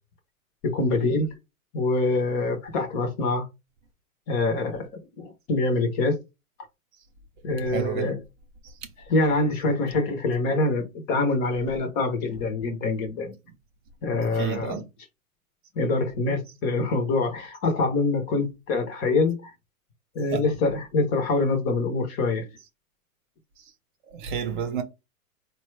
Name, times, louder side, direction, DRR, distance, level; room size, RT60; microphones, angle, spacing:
voice 1, 0.6-1.3 1.7-3.4 4.3-4.9 5.2-6.2 7.4-8.2 9.1-13.4 14.0-14.8 15.8-19.5 20.1-22.5, left 3 dB, 25° left, 0.6 m, -25 dB
voice 2, 7.7-8.1 14.4-14.8 20.3-20.4 24.1-24.8, right 8 dB, 35° right, 0.6 m, -29 dB
4.1 x 2.2 x 3.1 m
hypercardioid pair, 140°, 43 cm